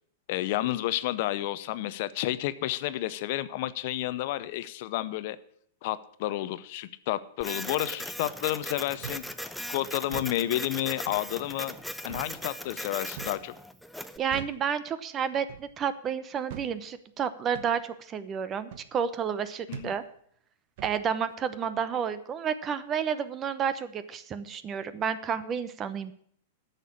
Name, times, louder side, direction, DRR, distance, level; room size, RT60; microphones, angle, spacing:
voice 1, 0.3-5.4 5.8-9.2 9.7-11.7 12.0-13.5 19.7-19.9, left 15 dB, 55° left, 15 dB, 0.6 m, -31 dB
Printer, 7.4-14.2, equal, ahead, 0.6 m, -39 dB
sound 1, 9.0-9.3 10.0-10.4 11.1-11.3 12.1-12.3 13.2-13.4 14.3-14.6 15.5-15.7 16.5-16.7 17.5-17.7 18.7-18.9 19.7-19.9 20.8-21.0, right 9 dB, 60° right, 0.9 m, -42 dB
voice 2, 14.2-20.0 20.8-26.1, right 7 dB, 30° right, 13 dB, 0.8 m, -31 dB
9.8 x 6.7 x 8.4 m, 0.63 s
hypercardioid pair, 120°, 0 cm